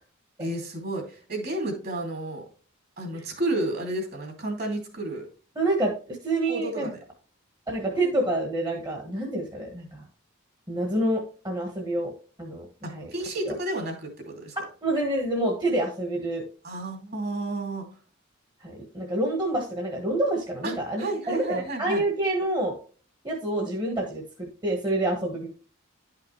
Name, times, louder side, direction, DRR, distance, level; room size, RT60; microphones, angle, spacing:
voice 1, 0.4-2.4 3.0-5.3 6.5-6.9 12.8-14.6 16.6-17.9 20.6-22.0, right 2 dB, 50° right, 2 dB, 2.7 m, -31 dB
voice 2, 5.5-5.9 6.2-6.9 7.7-10.0 10.7-12.1 12.4-13.1 13.4-13.6 14.8-16.4 18.6-22.8 23.2-25.5, right 1 dB, 20° right, 0 dB, 1.4 m, -27 dB
11.0 x 5.8 x 3.2 m, 0.39 s
head